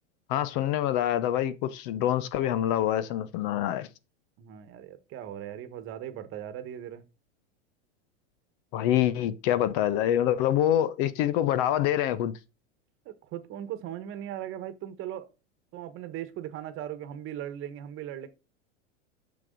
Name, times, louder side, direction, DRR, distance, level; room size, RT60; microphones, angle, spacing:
voice 1, 0.3-3.9 8.7-12.4, left 11 dB, 50° left, 0.8 m, -26 dB
voice 2, 4.4-7.0 13.0-15.3 15.7-18.3, right 11 dB, 35° right, 1.3 m, -38 dB
6.9 x 6.4 x 5.2 m
supercardioid pair, 135°, 35 cm